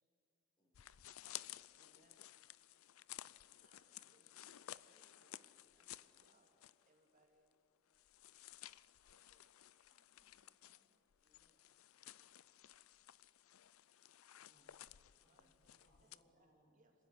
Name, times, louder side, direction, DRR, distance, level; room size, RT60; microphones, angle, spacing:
voice 1, 0.6-1.3 9.9-11.0, equal, 25° left, 1 dB, 4.6 m, -85 dB
sound 1, 0.7-6.9 7.2-7.3 7.9-16.2, left 13 dB, 80° left, 0.5 m, -56 dB
voice 2, 1.7-2.1 3.6-6.5 6.8-7.5 9.0-9.5 10.3-11.7 15.3-16.5 16.7-16.9, right 1 dB, 35° right, 1 dB, 2.7 m, -76 dB
voice 3, 14.3-16.8, equal, 40° left, -7 dB, 6.7 m, -75 dB
27.0 x 15.5 x 9.9 m, 2.7 s
head